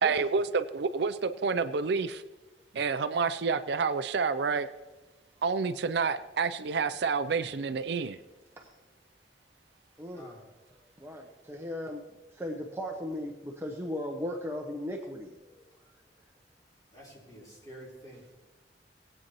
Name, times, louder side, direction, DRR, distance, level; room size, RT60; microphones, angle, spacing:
voice 1, 0.0-2.2 2.7-4.7 5.4-8.2, right 5 dB, 65° right, 11 dB, 0.5 m, -29 dB
voice 2, 11.0-12.0 12.3-15.7, left 1 dB, 15° right, 1 dB, 0.9 m, -37 dB
voice 3, 16.9-18.4, right 1 dB, 20° left, -5 dB, 3.9 m, -48 dB
19.5 x 8.8 x 3.0 m, 1.2 s
head